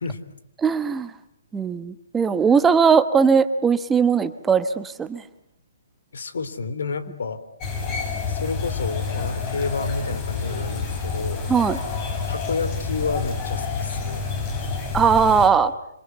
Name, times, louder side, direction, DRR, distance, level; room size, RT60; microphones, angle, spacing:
voice 1, 0.6-1.1 1.5-5.2 11.5-11.8 14.9-15.7, right 6 dB, 10° right, 11 dB, 1.0 m, -19 dB
voice 2, 6.1-7.4 8.3-11.5 12.3-14.2, left 4 dB, 75° left, 13 dB, 3.4 m, -30 dB
sound 1, 7.6-15.5, left 4 dB, 25° left, 7.9 m, -28 dB
27.0 x 26.5 x 8.3 m, 0.74 s
hypercardioid pair, 155°, 0 cm